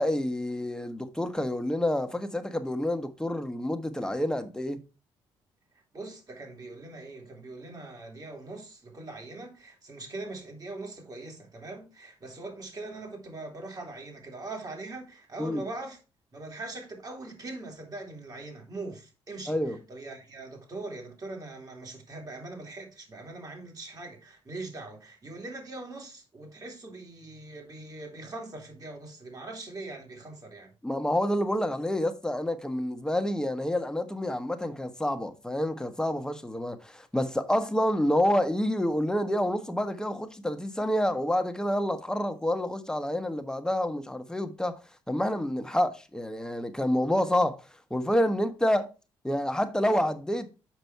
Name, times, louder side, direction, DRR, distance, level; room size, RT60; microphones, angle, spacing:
voice 1, 0.0-4.8 15.4-15.6 19.5-19.8 30.8-44.8 45.1-47.6 47.9-48.9 49.2-50.5, left 1 dB, 5° left, 1.2 m, -28 dB
voice 2, 5.9-16.0 16.3-30.7, right 2 dB, 35° right, 2.7 m, -41 dB
7.0 x 5.3 x 4.5 m
cardioid pair, 75°, 11 cm